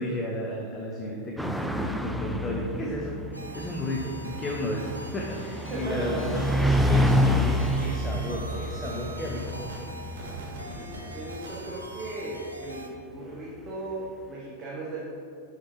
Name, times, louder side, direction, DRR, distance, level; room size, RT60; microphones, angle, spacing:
voice 1, 0.0-6.5 6.8-9.7, left 1 dB, 20° left, -1 dB, 0.7 m, -33 dB
sound 1, 1.4-12.3, equal, ahead, 0.3 m, -28 dB
sound 2, 3.3-12.9, right 1 dB, 85° right, 0.5 m, -44 dB
voice 2, 5.7-6.3 10.6-15.0, right 2 dB, 25° right, -6 dB, 1.2 m, -37 dB
sound 3, 6.6-12.8, right 1 dB, 50° right, 1.5 m, -43 dB
6.2 x 5.8 x 3.2 m, 2.6 s
figure-of-eight pair, 90°, 0 cm